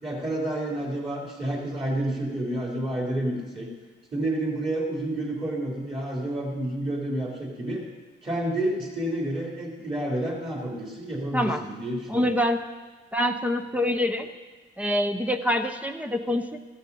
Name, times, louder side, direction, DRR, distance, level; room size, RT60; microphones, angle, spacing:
voice 1, 0.0-3.7 4.1-7.8 8.2-12.3, right 1 dB, 25° right, -2 dB, 3.6 m, -29 dB
voice 2, 12.1-12.6 13.1-14.3 14.8-16.6, left 1 dB, 5° right, 6 dB, 0.8 m, -25 dB
15.0 x 13.0 x 4.2 m, 1.3 s
cardioid pair, 90°, 20 cm